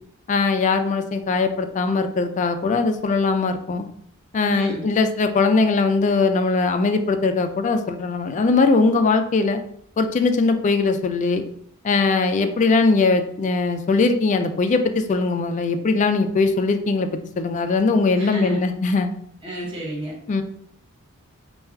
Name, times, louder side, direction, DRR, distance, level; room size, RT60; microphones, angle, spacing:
voice 1, 0.3-3.9 4.3-9.6 10.0-11.4 11.8-19.1 20.3-20.4, left 3 dB, 35° left, 7 dB, 0.3 m, -20 dB
voice 2, 4.4-4.9 18.1-18.6 19.4-20.1, right 2 dB, 25° right, -6 dB, 1.1 m, -31 dB
4.4 x 2.3 x 3.4 m, 0.67 s
head